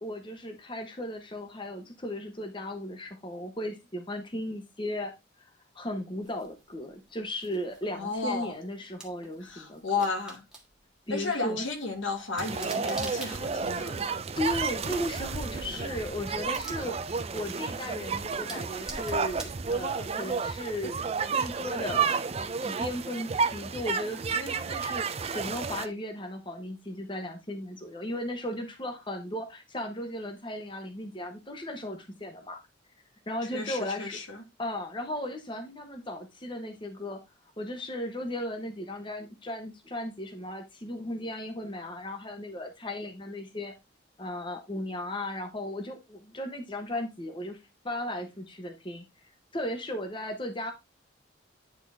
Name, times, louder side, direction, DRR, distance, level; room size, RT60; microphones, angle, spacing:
voice 1, 0.0-5.1 5.4-5.5 5.7-10.1 11.1-11.6 14.4-16.9 17.3-21.0 21.3-22.1 22.6-32.6 33.3-34.2 34.6-37.2 37.6-43.7 44.2-47.6 47.8-49.1 49.5-50.7, left 1 dB, 25° left, 1.1 m, -36 dB
sound 1, 6.2-20.8, right 2 dB, 5° right, 1.4 m, -49 dB
voice 2, 7.9-8.5 9.4-10.4 11.1-14.0 15.7-15.8 33.5-34.4, left 4 dB, 85° left, 1.6 m, -33 dB
sound 2, 12.4-25.9, right 5 dB, 35° right, 0.5 m, -31 dB
10.0 x 4.0 x 3.5 m
head